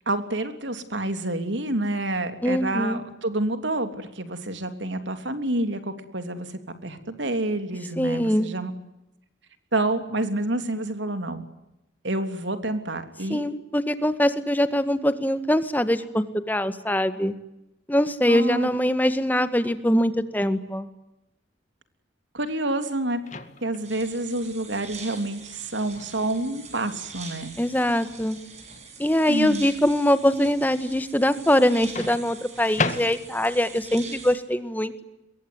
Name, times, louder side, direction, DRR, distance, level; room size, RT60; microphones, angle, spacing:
voice 1, 0.0-6.5 6.8-8.7 9.7-11.4 12.0-13.4 18.3-18.7 22.3-23.2 23.6-27.5 29.3-29.7, right 2 dB, 80° right, 9 dB, 3.4 m, -28 dB
voice 2, 2.4-3.0 8.0-8.5 13.3-17.3 17.9-20.9 27.6-28.4 29.0-35.0, left 1 dB, 10° left, 11 dB, 1.7 m, -23 dB
Microwave oven, 23.2-23.9 25.9-26.1 32.0-33.6, left 3 dB, 40° left, 2.0 m, -31 dB
sound 1, 23.8-34.4, right 5 dB, 35° right, 7.4 m, -44 dB
24.5 x 23.0 x 9.7 m, 0.91 s
head